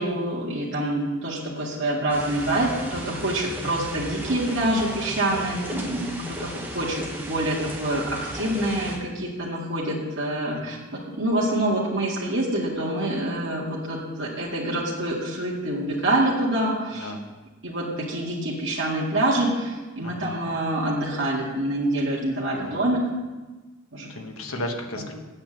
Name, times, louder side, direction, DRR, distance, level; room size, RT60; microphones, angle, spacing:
voice 1, 0.0-17.1 17.6-23.0 23.9-24.1 25.0-25.1, right 1 dB, 60° right, -6 dB, 2.1 m, -26 dB
sound 1, 2.1-9.0, equal, 10° right, 1.4 m, -36 dB
voice 2, 10.5-10.8 16.9-17.3 20.0-20.4 22.5-22.9 24.1-25.1, left 1 dB, 90° left, 4 dB, 1.4 m, -35 dB
8.7 x 7.4 x 7.5 m, 1.2 s
head